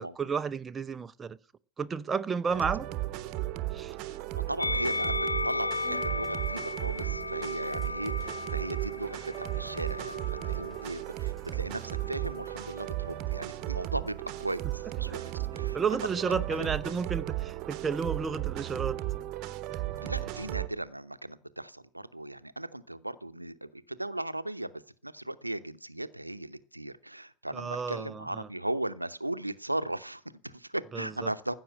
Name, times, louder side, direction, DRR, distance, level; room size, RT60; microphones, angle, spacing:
voice 1, 0.0-1.4 1.8-2.9 3.7-4.0 15.1-15.2 15.7-19.0 19.7-19.8 27.5-28.5 30.9-31.3, right 5 dB, 15° right, 0.6 m, -32 dB
sound 1, 2.5-20.7, right 15 dB, 40° right, 1.0 m, -35 dB
voice 2, 4.1-16.7 20.0-31.5, right 1 dB, 85° right, 0.8 m, -37 dB
Musical instrument, 4.6-11.0 11.8-12.8, left 3 dB, 75° left, 0.9 m, -35 dB
sound 2, 5.8-16.2, left 1 dB, 5° left, 3.8 m, -57 dB
15.0 x 6.4 x 9.1 m
figure-of-eight pair, 90°, 0 cm